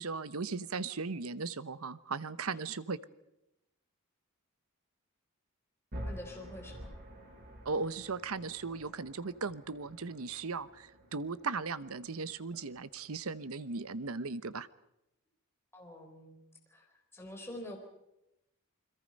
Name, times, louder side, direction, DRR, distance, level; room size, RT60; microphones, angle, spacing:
voice 1, 0.0-3.0 7.6-14.7, right 4 dB, 75° right, 16 dB, 0.9 m, -37 dB
sound 1, 5.9-13.9, equal, 45° right, 5.5 m, -49 dB
voice 2, 6.1-6.9 15.7-16.4 16.7-16.9 17.1-17.8, left 1 dB, 10° left, 1 dB, 3.9 m, -46 dB
29.0 x 22.0 x 5.3 m, 0.88 s
head